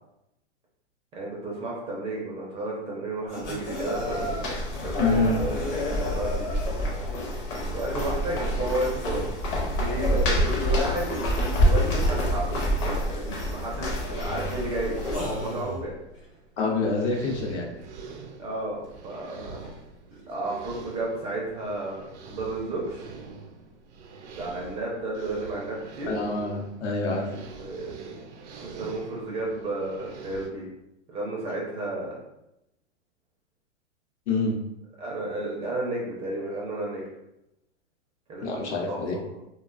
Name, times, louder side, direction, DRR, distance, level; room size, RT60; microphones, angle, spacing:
voice 1, 1.1-4.3 4.7-6.6 7.7-9.3 9.7-12.5 13.0-15.9 18.4-19.6 20.3-23.1 24.4-26.1 27.3-28.0 28.6-30.7 31.1-32.2 35.0-37.0 38.3-38.4 38.9-39.2, right 2 dB, 15° right, -4 dB, 0.4 m, -32 dB
sound 1, 3.3-7.1 7.7-7.8 8.4-8.5 8.9-10.6 12.5-12.6 13.3-13.4 13.7-15.9 18.9-19.0 19.4-19.8 20.8-20.9, left 1 dB, 55° left, 1.0 m, -36 dB
sound 2, 3.4-15.6, equal, 35° left, 0.6 m, -27 dB
voice 2, 5.0-5.4 16.6-17.7 26.1-27.3 34.3-34.6 38.4-39.2, left 3 dB, 70° left, 0 dB, 0.8 m, -26 dB
sound 3, 14.7-30.5, right 4 dB, 70° right, 0.5 m, -45 dB
2.4 x 2.2 x 2.4 m, 0.84 s
hypercardioid pair, 120°, 35 cm